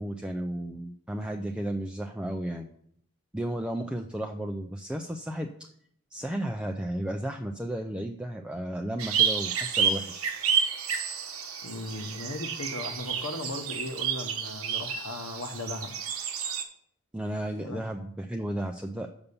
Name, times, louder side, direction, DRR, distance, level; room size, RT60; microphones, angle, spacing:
voice 1, 0.0-2.7 3.3-5.7 6.1-10.3 17.1-19.1, right 1 dB, 5° right, 2 dB, 0.3 m, -33 dB
sound 1, 9.0-16.6, right 7 dB, 85° right, 1.0 m, -30 dB
voice 2, 11.6-15.9 17.7-17.8, left 2 dB, 80° left, 7 dB, 1.1 m, -37 dB
6.9 x 5.4 x 6.8 m, 0.67 s
head